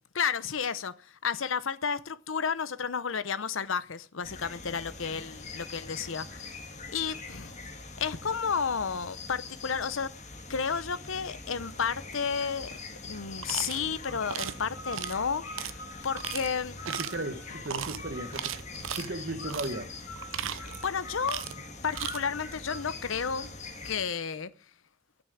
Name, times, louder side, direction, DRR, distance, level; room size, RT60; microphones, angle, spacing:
voice 1, 0.2-0.9 1.2-6.6 6.9-7.6 8.0-10.1 10.5-12.7 13.0-15.8 16.0-16.8 20.5-21.4 21.8-23.5 23.8-24.5, left 6 dB, 85° left, 0.8 m, -32 dB
sound 1, 4.2-24.0, left 3 dB, 35° left, 1.7 m, -43 dB
sound 2, 13.4-13.8 14.3-14.6 14.9-15.2 15.6-15.7 16.2-16.5 16.8-17.2 17.7-18.0 18.3-19.1 19.5-19.7 20.2-20.9 21.2-21.6 21.9-22.2, right 9 dB, 90° right, 0.8 m, -36 dB
sound 3, 14.0-18.7 19.4-23.8, left 1 dB, 50° left, 2.6 m, -46 dB
voice 2, 16.9-18.6 19.0-19.9, right 2 dB, 50° right, 1.4 m, -36 dB
12.5 x 6.2 x 9.3 m
head